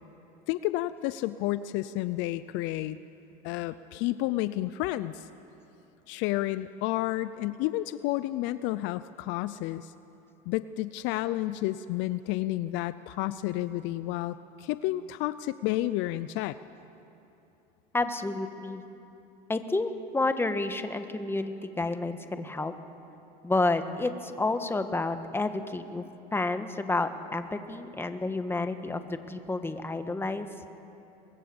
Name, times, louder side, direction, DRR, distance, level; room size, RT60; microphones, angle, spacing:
voice 1, 0.5-3.0 3.4-5.3 6.1-9.9 10.5-16.6, left 16 dB, 65° left, 15 dB, 0.6 m, -31 dB
voice 2, 17.9-18.8 19.5-22.7 23.4-26.0 26.3-30.5, left 2 dB, 10° left, 8 dB, 1.5 m, -30 dB
24.0 x 21.5 x 7.2 m, 2.9 s
supercardioid pair, 100°, 20 cm